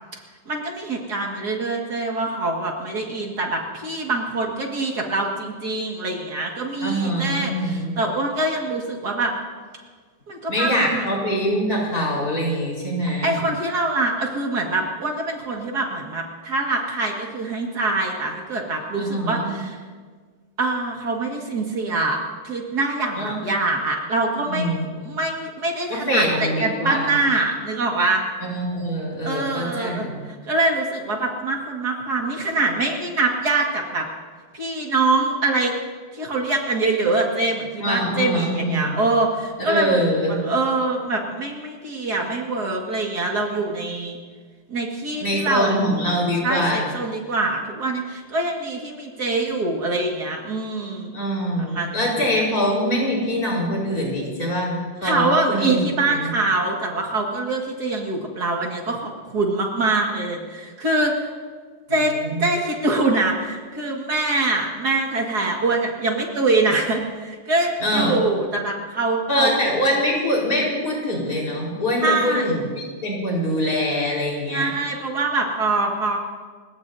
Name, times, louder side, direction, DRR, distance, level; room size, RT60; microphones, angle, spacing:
voice 1, 0.5-9.3 10.3-11.0 13.2-19.8 20.6-22.2 22.4-28.2 29.2-30.1 30.5-34.1 34.5-35.7 36.1-40.0 40.3-44.2 44.7-45.9 46.4-51.1 51.6-52.1 55.0-61.3 61.9-62.1 62.4-69.5 72.0-72.5 74.5-76.2, right 2 dB, 60° right, 0 dB, 2.6 m, -24 dB
voice 2, 6.8-8.0 10.5-13.4 19.0-19.5 23.1-23.4 24.5-25.0 25.9-27.1 28.4-30.2 37.8-39.0 39.6-40.4 45.2-46.9 51.1-55.8 56.1-56.3 62.1-62.5 67.8-68.2 69.3-74.7, equal, 50° left, -3 dB, 5.2 m, -24 dB
30.0 x 17.0 x 2.8 m, 1.5 s
omnidirectional pair, 2.0 m